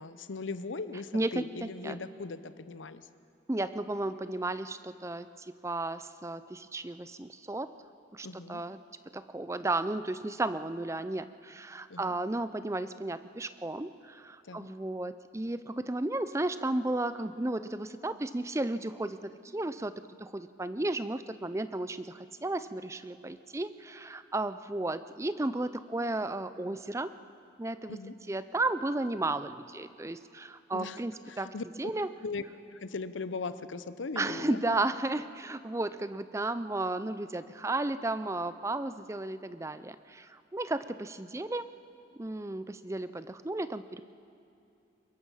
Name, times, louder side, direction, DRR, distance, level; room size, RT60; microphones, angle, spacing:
voice 1, 0.0-3.1 8.2-8.6 11.9-12.2 14.4-14.7 27.9-28.1 30.7-31.0 31.3-31.9 32.2-32.4 32.7-34.6, left 3 dB, 85° left, 13 dB, 0.7 m, -39 dB
voice 2, 1.1-2.0 3.5-7.7 8.1-8.8 9.1-27.1 27.6-28.0 28.3-32.1 34.2-41.7 42.1-44.0, right 2 dB, 15° right, 13 dB, 0.5 m, -34 dB
23.0 x 21.5 x 5.7 m, 2.7 s
head